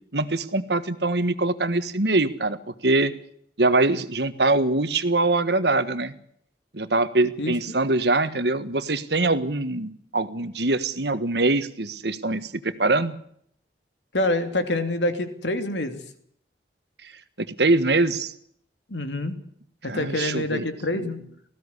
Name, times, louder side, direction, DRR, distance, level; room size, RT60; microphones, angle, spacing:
voice 1, 0.1-2.6 2.8-3.1 3.6-6.1 6.7-13.1 17.0-17.1 17.4-18.3 19.9-20.6 20.9-21.1, right 2 dB, 70° right, 12 dB, 1.6 m, -23 dB
voice 2, 7.4-7.8 14.1-16.0 18.9-19.4 19.8-21.2, left 1 dB, 85° left, 7 dB, 2.9 m, -26 dB
19.0 x 16.0 x 9.9 m, 0.65 s
head